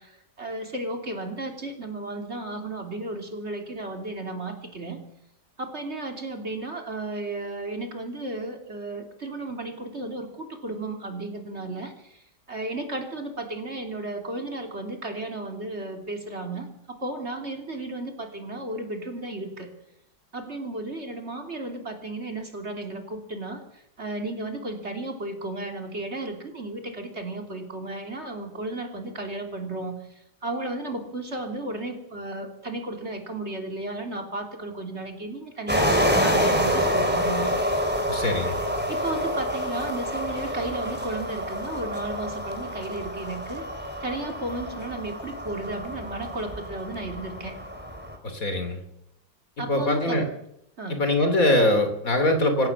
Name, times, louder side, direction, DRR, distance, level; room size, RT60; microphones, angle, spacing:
voice 1, 0.0-5.0 5.6-19.7 20.3-37.5 38.9-43.7 44.0-47.6 49.6-50.2 50.8-51.0, right 2 dB, 40° right, 3 dB, 3.5 m, -34 dB
sound 1, 35.7-48.1, equal, 5° right, 3.6 m, -27 dB
voice 2, 38.1-38.6 48.2-48.8 49.7-50.2 50.9-52.7, left 1 dB, 55° left, 7 dB, 3.5 m, -22 dB
26.0 x 16.0 x 7.3 m, 0.81 s
omnidirectional pair, 1.8 m